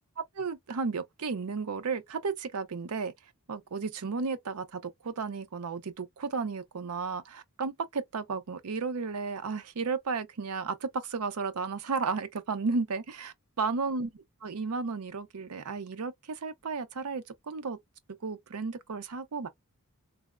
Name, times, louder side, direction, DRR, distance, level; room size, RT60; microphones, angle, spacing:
voice 1, 0.3-3.1 3.5-14.1 14.4-17.8 18.2-19.5, right 4 dB, 85° right, 0.6 m, -33 dB
3.3 x 2.0 x 2.4 m
head